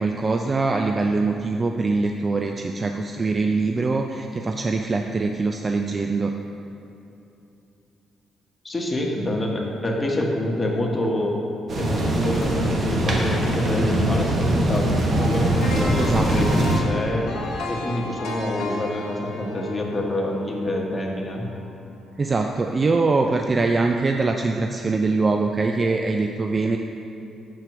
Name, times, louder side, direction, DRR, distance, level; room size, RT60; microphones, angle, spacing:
voice 1, 0.0-6.3 16.0-16.3 22.2-26.8, right 3 dB, 30° right, 4 dB, 0.3 m, -23 dB
voice 2, 8.6-11.4 11.8-17.3 17.7-21.5, left 1 dB, 20° left, -1 dB, 1.1 m, -26 dB
sound 1, 11.7-16.8, right 1 dB, 50° right, 1.1 m, -22 dB
sound 2, 15.6-21.6 22.0-22.1, left 2 dB, 80° left, 0.9 m, -33 dB
6.7 x 4.5 x 6.0 m, 2.8 s
cardioid pair, 90°, 0 cm